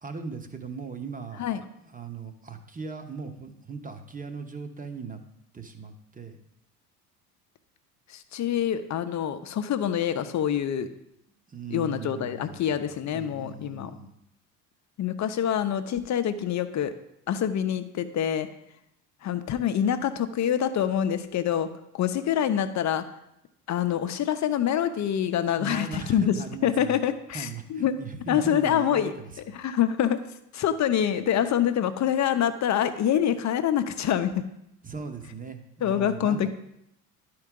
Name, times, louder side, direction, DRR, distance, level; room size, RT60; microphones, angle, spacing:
voice 1, 0.0-1.5 1.7-5.2 5.5-6.4 11.5-14.1 25.5-27.0 27.3-29.4 34.8-36.5, right 5 dB, 15° right, 7 dB, 1.1 m, -39 dB
voice 2, 8.1-10.9 11.7-13.9 15.0-16.9 17.3-18.5 19.2-21.7 21.9-23.0 23.7-26.3 26.6-28.0 28.3-29.1 29.5-30.2 30.5-34.4 35.8-36.5, left 9 dB, 35° left, 10 dB, 0.8 m, -26 dB
11.5 x 4.8 x 3.8 m, 0.80 s
hypercardioid pair, 70°, 47 cm